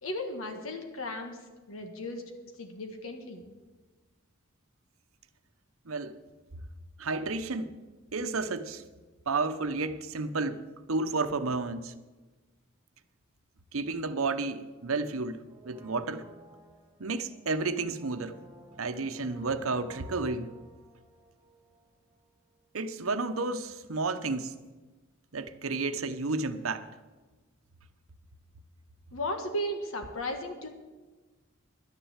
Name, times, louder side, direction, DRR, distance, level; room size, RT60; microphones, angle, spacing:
voice 1, 0.0-1.4 1.7-2.2 2.6-3.4 29.1-30.7, left 1 dB, 80° left, 1.5 m, -35 dB
voice 2, 7.0-7.7 8.1-8.9 9.3-10.6 10.9-11.9 13.7-15.4 15.6-16.2 17.0-18.4 18.8-20.6 22.7-24.6 25.3-26.9, right 3 dB, 80° right, 0.9 m, -31 dB
Brass instrument, 15.4-22.3 22.5-22.6, right 1 dB, 15° right, 1.9 m, -54 dB
11.5 x 10.5 x 7.3 m
head